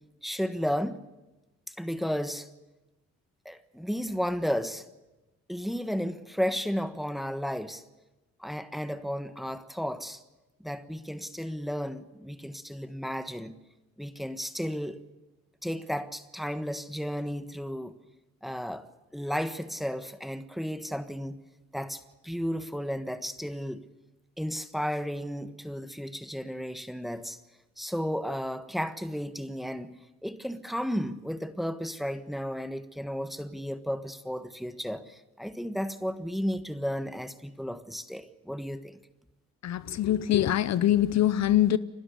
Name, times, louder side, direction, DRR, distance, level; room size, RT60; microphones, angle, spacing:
voice 1, 0.2-1.0 1.7-2.5 3.4-4.8 5.5-7.8 8.4-10.2 10.6-13.5 14.0-15.0 15.6-17.9 18.4-18.8 19.1-21.4 21.7-23.8 24.4-27.4 27.8-29.9 30.2-39.0, equal, ahead, 1.3 m, -33 dB
voice 2, 39.6-41.8, left 12 dB, 60° left, 0.7 m, -23 dB
30.0 x 12.5 x 8.3 m
cardioid pair, 90°, 30 cm